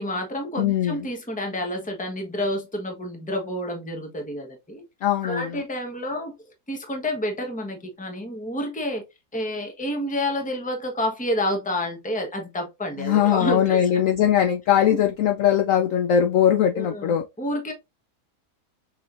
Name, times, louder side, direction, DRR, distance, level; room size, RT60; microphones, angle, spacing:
voice 1, 0.0-4.8 5.2-6.3 6.7-9.0 9.3-14.0 14.9-15.0 16.7-17.7, left 1 dB, 5° left, 0.8 m, -29 dB
voice 2, 0.6-1.0 5.0-5.6 13.0-17.2, left 9 dB, 70° left, 0.8 m, -20 dB
5.8 x 3.2 x 2.5 m
omnidirectional pair, 1.7 m